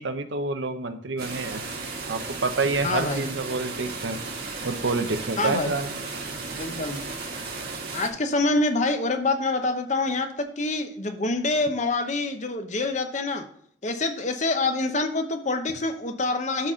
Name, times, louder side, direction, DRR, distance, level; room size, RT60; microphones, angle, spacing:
voice 1, 0.0-1.6 2.1-4.2 4.6-5.9, right 3 dB, 75° right, 8 dB, 0.9 m, -28 dB
sound 1, 1.2-8.1, right 3 dB, 55° right, 1.7 m, -35 dB
voice 2, 2.8-3.3 5.4-5.8 6.6-7.1 7.9-13.5 13.8-16.7, left 2 dB, 40° left, 7 dB, 0.9 m, -26 dB
12.5 x 4.2 x 3.8 m, 0.67 s
head